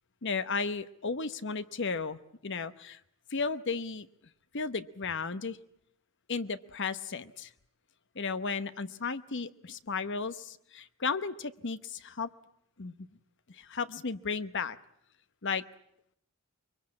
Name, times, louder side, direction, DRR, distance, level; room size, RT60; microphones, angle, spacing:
voice 1, 0.2-3.0 3.3-4.1 4.5-5.6 6.3-7.5 8.1-12.3 12.8-13.1 13.5-14.8 15.4-15.6, left 4 dB, 55° left, 13 dB, 1.0 m, -34 dB
23.0 x 23.0 x 8.7 m, 0.72 s
head